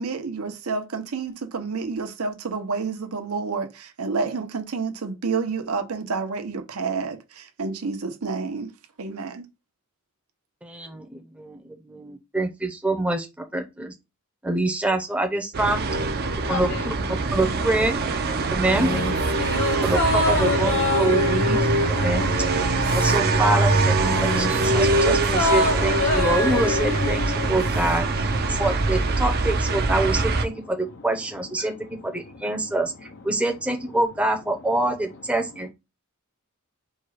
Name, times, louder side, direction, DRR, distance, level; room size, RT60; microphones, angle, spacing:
voice 1, 0.0-8.7 9.0-9.4, right 4 dB, 80° right, 0.8 m, -29 dB
voice 2, 10.6-13.3 13.5-13.9 14.4-15.8 16.5-16.9 17.3-18.0 18.5-18.9 19.8-21.7 22.0-22.3 22.9-31.7 32.0-35.7, right 2 dB, 5° right, 0.7 m, -26 dB
sound 1, 15.5-30.4, right 3 dB, 45° right, 0.6 m, -23 dB
voice 3, 16.2-16.9 17.2-17.3 18.4-18.5 19.4-20.4 21.9-23.1 24.2-24.3 27.4-27.5 28.5-28.6 32.2-32.4, left 5 dB, 55° left, 0.6 m, -40 dB
sound 2, 18.6-23.4 23.7-28.0 28.3-28.4, left 2 dB, 80° left, 1.2 m, -27 dB
4.5 x 2.3 x 4.7 m
head